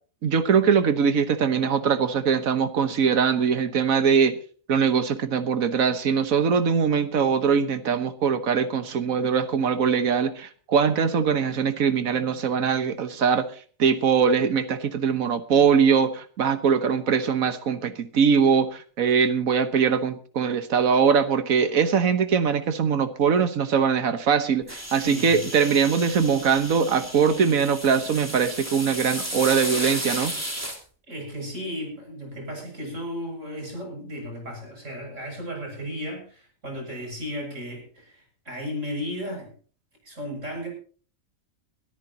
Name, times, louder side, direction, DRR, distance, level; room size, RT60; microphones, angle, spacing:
voice 1, 0.2-4.4 4.7-13.5 13.8-30.3, right 6 dB, 85° right, 10 dB, 1.6 m, -22 dB
sound 1, 24.7-30.8, equal, 10° right, 3.4 m, -33 dB
voice 2, 24.9-25.4 31.1-39.5 40.0-40.7, equal, 65° right, 1 dB, 7.7 m, -35 dB
23.0 x 13.5 x 2.9 m, 0.41 s
omnidirectional pair, 1.4 m